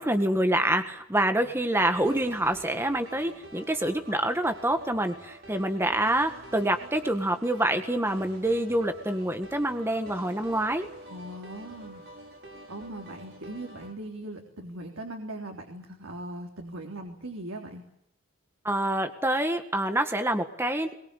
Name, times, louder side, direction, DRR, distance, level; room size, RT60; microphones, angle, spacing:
voice 1, 0.0-10.9 18.6-20.9, right 1 dB, 10° right, 6 dB, 1.7 m, -26 dB
electronic trance leads - loop mode, 1.7-13.9, right 1 dB, 55° right, 6.0 m, -47 dB
voice 2, 11.1-12.0 12.7-17.8, right 1 dB, 85° right, 1 dB, 3.5 m, -39 dB
22.5 x 22.0 x 8.3 m, 0.75 s
head